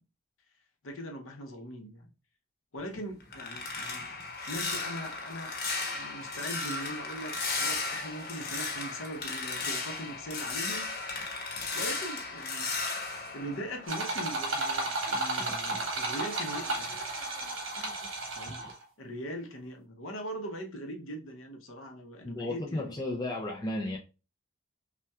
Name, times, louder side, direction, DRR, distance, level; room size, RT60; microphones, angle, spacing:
voice 1, 0.8-2.1 2.7-4.1 4.5-5.6 5.9-7.3 7.6-10.9 11.7-12.7 13.3-16.8 18.4-18.6 19.0-22.9, equal, 75° left, 0.8 m, -40 dB
sound 1, 2.8-14.4 14.8-17.4 17.8-18.1 18.5-18.7, left 3 dB, 50° left, 1.0 m, -36 dB
sound 2, 13.9-18.8, right 2 dB, 70° right, 1.1 m, -33 dB
voice 2, 22.3-24.0, left 1 dB, 20° left, 0.4 m, -33 dB
5.5 x 2.2 x 2.3 m
head